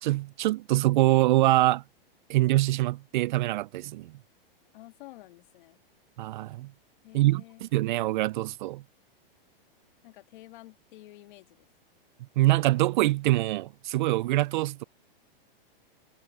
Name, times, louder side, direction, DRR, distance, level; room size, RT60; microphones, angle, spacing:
voice 1, 0.0-1.8 2.3-4.1 6.2-6.7 7.1-8.8 12.4-14.8, right 17 dB, 55° right, 0.4 m, -24 dB
voice 2, 4.7-5.8 7.0-7.7 10.0-11.7, left 18 dB, 55° left, 2.1 m, -50 dB
hypercardioid pair, 140°, 29 cm